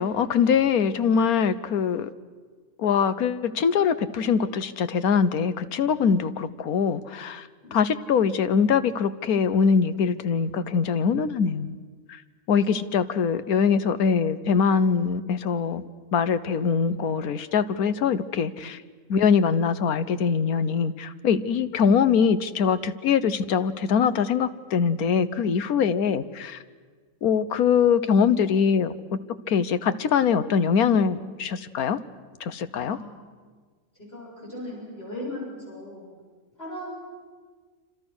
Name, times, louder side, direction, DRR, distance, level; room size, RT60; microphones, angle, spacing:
voice 1, 0.0-2.1 2.8-11.8 12.1-12.2 12.5-15.8 16.1-18.8 19.1-26.6 27.2-28.9 29.5-32.0 32.4-33.0, left 6 dB, 85° left, 13 dB, 1.4 m, -23 dB
voice 2, 7.6-8.1 12.5-12.9 32.9-33.3 34.0-36.1 36.6-36.9, left 1 dB, 40° left, -5 dB, 8.2 m, -38 dB
27.0 x 26.0 x 6.3 m, 1.5 s
omnidirectional pair, 1.5 m